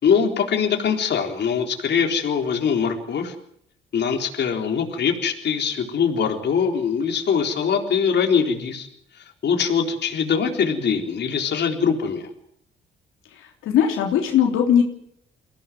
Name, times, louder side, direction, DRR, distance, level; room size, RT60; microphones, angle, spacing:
voice 1, 0.0-3.3 3.9-8.9 9.2-12.3, left 6 dB, 60° left, 3 dB, 3.9 m, -22 dB
voice 2, 13.7-14.8, left 9 dB, 90° left, 2 dB, 3.5 m, -18 dB
23.5 x 17.0 x 9.4 m, 0.69 s
cardioid pair, 90°, 20 cm